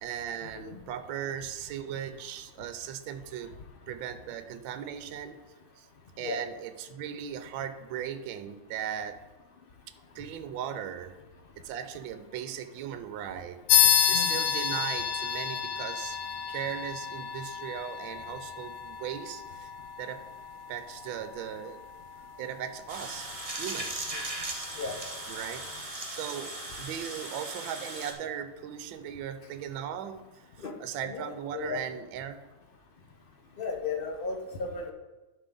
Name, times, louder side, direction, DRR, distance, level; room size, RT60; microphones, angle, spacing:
voice 1, 0.0-3.5 3.9-5.4 5.8-5.9 6.2-9.2 10.1-11.2 11.6-16.2 16.5-19.7 20.0-20.2 20.7-21.8 22.4-23.3 23.6-24.1 25.3-25.7 26.1-32.4, right 9 dB, 75° right, 10 dB, 1.3 m, -38 dB
sound 1, 13.7-23.7, left 9 dB, 85° left, 1.4 m, -30 dB
sound 2, 22.9-28.1, right 2 dB, 35° right, 0.5 m, -38 dB
voice 2, 31.0-31.8 33.6-34.9, left 4 dB, 50° left, 2 dB, 0.6 m, -35 dB
11.5 x 5.6 x 3.8 m, 1.1 s
omnidirectional pair, 2.3 m